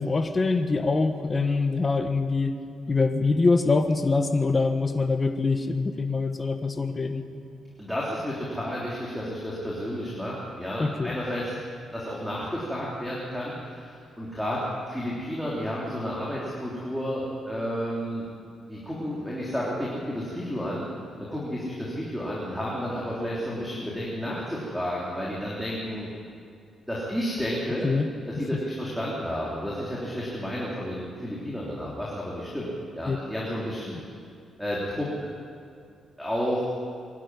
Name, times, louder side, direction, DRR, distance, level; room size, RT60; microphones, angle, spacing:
voice 1, 0.0-2.6 2.9-7.2 10.8-11.2 27.8-28.1 33.1-33.2, left 3 dB, 25° left, 6 dB, 1.4 m, -24 dB
voice 2, 7.8-11.5 11.9-18.2 18.7-20.9 21.2-26.1 26.9-27.9 28.3-32.7 32.9-34.0 34.6-35.1 36.2-36.7, equal, ahead, -6 dB, 3.2 m, -31 dB
22.5 x 12.0 x 9.6 m, 2.3 s
cardioid pair, 145°, 0 cm